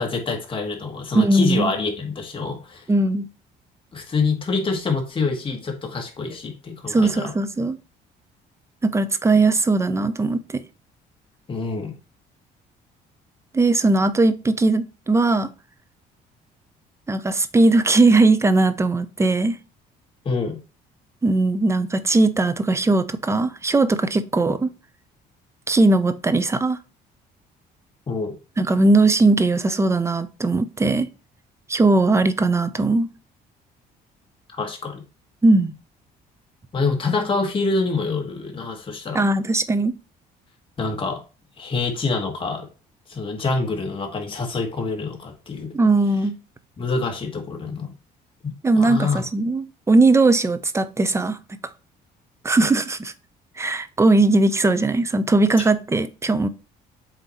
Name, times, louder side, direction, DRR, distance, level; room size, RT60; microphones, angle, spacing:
voice 1, 0.0-2.8 3.9-7.3 11.5-12.0 20.2-20.6 28.1-28.4 34.6-35.0 36.7-39.2 40.8-41.2 41.6-42.7 43.1-45.7 46.8-47.9 48.4-49.2, left 4 dB, 30° left, 2.0 m, -26 dB
voice 2, 1.1-1.7 2.9-3.3 6.9-7.8 8.8-10.6 13.5-15.5 17.1-19.6 21.2-24.7 25.7-26.8 28.6-31.1 31.7-33.1 35.4-35.7 39.1-39.9 45.7-46.4 48.6-51.4 52.4-53.1 53.6-56.5, right 2 dB, 15° right, 0.7 m, -19 dB
7.9 x 3.0 x 4.2 m
cardioid pair, 110°, 17 cm